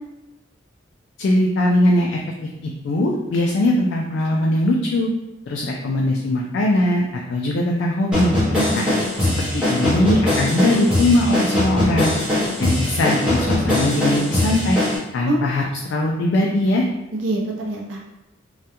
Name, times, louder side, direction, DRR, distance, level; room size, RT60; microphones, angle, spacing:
voice 1, 1.2-2.2 2.6-5.1 5.5-7.0 7.3-8.3 8.7-8.9 9.2-12.2 12.6-14.8 15.1-16.9, left 1 dB, 65° left, -1 dB, 0.3 m, -20 dB
sound 1, 8.1-15.0, left 1 dB, 5° right, 0.6 m, -21 dB
voice 2, 8.5-8.9 15.2-15.4 17.1-18.0, right 2 dB, 75° right, -1 dB, 0.5 m, -25 dB
2.3 x 2.1 x 2.8 m, 0.96 s
head